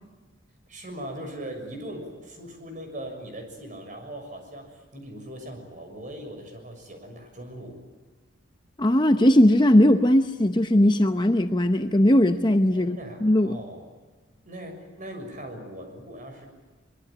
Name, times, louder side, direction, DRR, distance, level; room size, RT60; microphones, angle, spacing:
voice 1, 0.7-7.8 12.7-13.9 14.4-16.5, right 1 dB, 40° right, 5 dB, 6.6 m, -40 dB
voice 2, 8.8-13.6, left 1 dB, 20° left, 8 dB, 0.8 m, -19 dB
24.0 x 22.5 x 8.8 m, 1.3 s
head